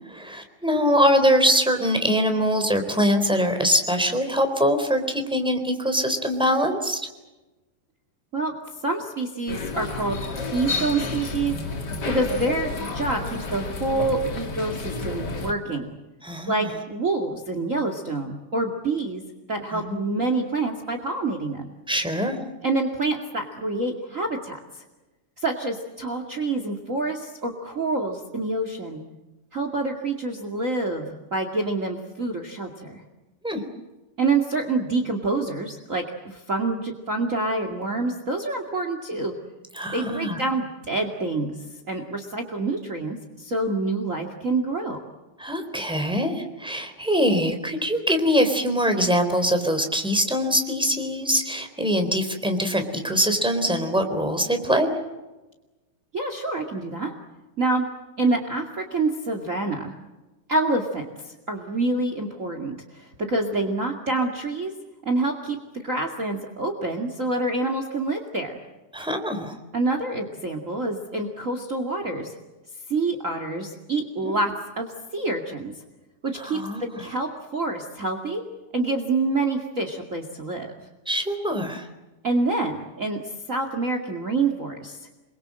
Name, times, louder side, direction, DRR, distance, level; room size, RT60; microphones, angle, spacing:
voice 1, 0.1-7.0 16.2-16.8 19.7-20.0 21.9-22.4 33.4-33.6 39.7-40.4 45.4-54.9 68.9-69.5 74.2-74.3 76.3-76.9 81.0-81.9, equal, ahead, 6 dB, 3.1 m, -23 dB
voice 2, 8.8-11.5 12.1-15.9 16.5-19.2 19.5-21.7 22.6-24.6 25.4-29.0 29.5-33.0 34.2-39.3 39.9-41.6 41.9-45.0 56.1-57.1 57.6-57.8 58.2-59.9 60.5-64.7 65.0-68.6 69.7-72.3 72.9-74.5 74.8-75.7 76.2-78.4 78.7-80.7 82.2-83.2 83.5-85.0, right 2 dB, 35° right, 5 dB, 1.3 m, -27 dB
sound 1, 9.5-15.5, left 3 dB, 30° left, 2.1 m, -30 dB
28.5 x 23.0 x 7.7 m, 1.1 s
omnidirectional pair, 5.2 m